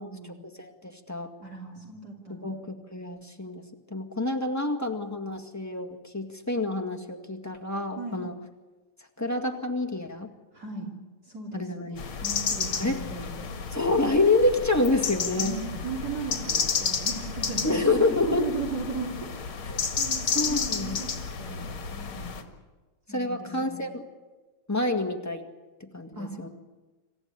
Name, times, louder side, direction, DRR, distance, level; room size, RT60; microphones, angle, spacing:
voice 1, 0.0-0.5 1.4-2.6 8.0-8.2 10.5-10.9 11.2-13.5 15.4-17.9 18.3-19.6 20.0-21.1 21.4-22.3 23.1-23.8 26.2-26.5, right 4 dB, 45° right, 1 dB, 3.6 m, -37 dB
voice 2, 0.6-1.3 2.4-3.6 3.9-8.3 9.2-10.3 11.5-12.0 12.8-13.0 13.7-15.5 17.6-18.5 19.7-19.8 20.3-21.0 23.1-24.0 24.7-25.5 25.8-26.5, left 2 dB, 10° left, 2 dB, 1.8 m, -27 dB
sound 1, 12.0-22.4, left 6 dB, 75° left, 2.8 m, -31 dB
27.0 x 15.0 x 9.8 m, 1.3 s
omnidirectional pair, 2.3 m